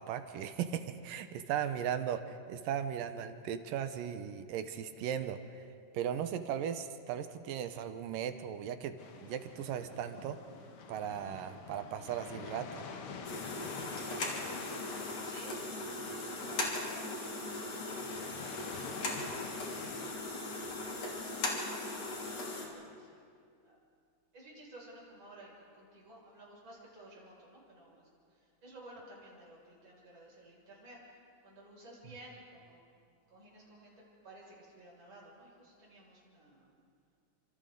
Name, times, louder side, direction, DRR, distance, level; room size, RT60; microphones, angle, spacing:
voice 1, 0.0-5.6 5.9-10.4 10.9-12.8 32.0-32.2, right 9 dB, 80° right, 9 dB, 2.5 m, -37 dB
sound 1, 9.0-20.1, left 5 dB, 70° left, 1.2 m, -48 dB
sound 2, 13.2-22.7, left 2 dB, 50° left, 3.9 m, -38 dB
voice 2, 14.3-18.7 21.7-23.3 23.6-23.8 24.3-31.2 31.4-32.8 33.3-33.9 34.2-36.7, right 1 dB, 35° right, -6 dB, 6.8 m, -55 dB
29.5 x 26.5 x 3.9 m, 2.3 s
omnidirectional pair, 4.1 m